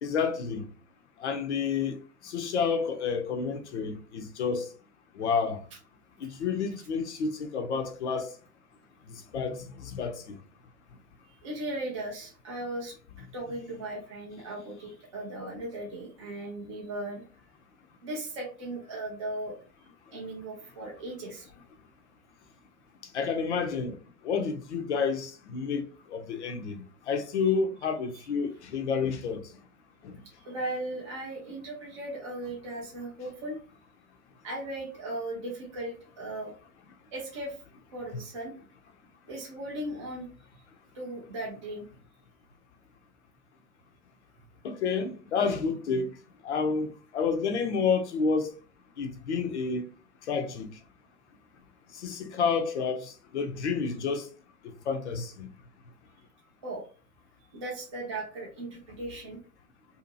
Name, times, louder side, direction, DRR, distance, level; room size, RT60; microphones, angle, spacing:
voice 1, 0.0-0.7 1.2-1.9 2.2-4.7 5.1-5.6 6.2-8.3 9.1-10.4 23.1-24.0 24.2-29.4 30.0-30.2 44.6-46.1 46.4-48.5 49.0-49.8 50.3-50.7 51.9-54.3 54.6-55.5, left 5 dB, 45° left, 0.6 m, -30 dB
voice 2, 11.4-17.2 18.0-19.5 20.1-21.5 30.4-33.6 34.4-36.5 37.1-37.6 37.9-38.5 39.3-40.3 40.9-41.8 56.6-56.8 57.5-59.4, right 1 dB, 20° right, 0.3 m, -37 dB
2.6 x 2.5 x 2.6 m
figure-of-eight pair, 115°, 49 cm